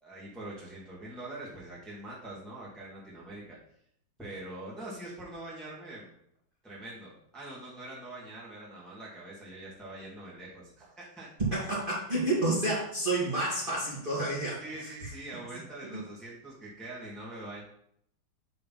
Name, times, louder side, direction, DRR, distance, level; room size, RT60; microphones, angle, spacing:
voice 1, 0.0-3.6 4.2-6.2 6.6-11.3 14.6-17.6, right 1 dB, ahead, -6 dB, 1.7 m, -43 dB
voice 2, 11.5-14.6, right 2 dB, 25° right, -6 dB, 1.8 m, -29 dB
8.0 x 3.4 x 5.5 m, 0.70 s
omnidirectional pair, 2.3 m